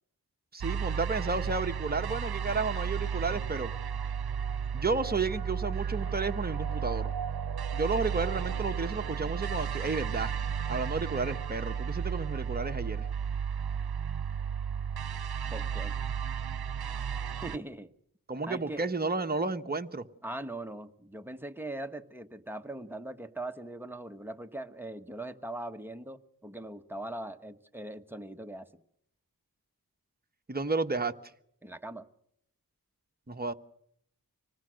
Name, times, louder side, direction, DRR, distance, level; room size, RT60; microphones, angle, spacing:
voice 1, 0.5-3.7 4.7-7.1 7.7-10.3 10.7-13.0 18.3-20.0 30.5-31.1 33.3-33.5, right 3 dB, 25° right, 7 dB, 1.1 m, -32 dB
sound 1, 0.6-17.6, right 7 dB, 85° right, 0.7 m, -33 dB
voice 2, 15.5-16.0 17.4-17.9 18.4-18.8 20.2-28.8 31.6-32.1, right 1 dB, 5° right, 7 dB, 1.3 m, -40 dB
25.0 x 19.0 x 6.4 m, 0.72 s
cardioid pair, 50°, 37 cm